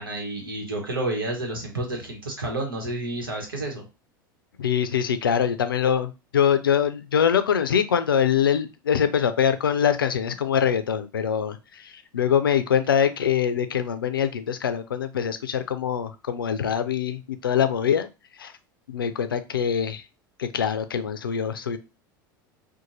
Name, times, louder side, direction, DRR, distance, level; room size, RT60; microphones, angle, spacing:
voice 1, 0.0-3.8, right 2 dB, 90° right, 1.0 m, -30 dB
voice 2, 4.6-18.1 18.4-18.5 18.9-20.0 20.4-21.8, left 8 dB, 90° left, 0.4 m, -24 dB
2.6 x 2.2 x 3.0 m
hypercardioid pair, 80°, 11 cm